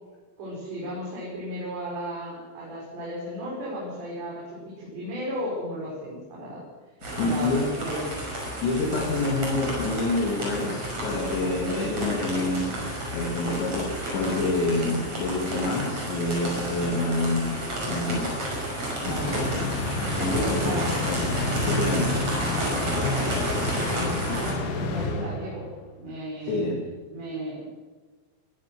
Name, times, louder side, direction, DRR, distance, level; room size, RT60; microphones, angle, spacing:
voice 1, 0.4-6.6 7.2-8.1 11.4-12.2 19.0-19.6 20.4-20.9 22.8-25.7 26.0-26.6 27.1-27.7, equal, 70° right, -7 dB, 8.2 m, -34 dB
sound 1, 7.0-24.5, right 1 dB, 35° right, 6.7 m, -31 dB
voice 2, 7.2-7.6 8.6-17.5 17.9-18.4 19.1-19.4 20.2-22.2 26.5-26.8, left 2 dB, 75° left, -2 dB, 5.1 m, -27 dB
sound 2, 19.1-25.8, left 2 dB, 55° left, 3.1 m, -30 dB
21.0 x 15.5 x 7.9 m, 1.3 s
omnidirectional pair, 5.2 m